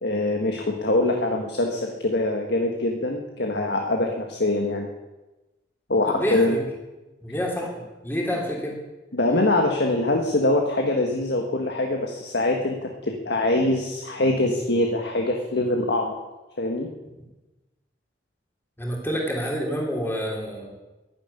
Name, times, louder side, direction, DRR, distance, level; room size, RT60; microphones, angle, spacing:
voice 1, 0.0-4.9 5.9-6.6 9.1-16.2 16.6-16.9, left 2 dB, 65° left, 2 dB, 1.6 m, -23 dB
voice 2, 6.1-6.6 7.2-7.7 8.0-8.8 18.8-20.7, equal, 10° left, -1 dB, 3.3 m, -28 dB
11.5 x 10.5 x 9.8 m, 1.1 s
head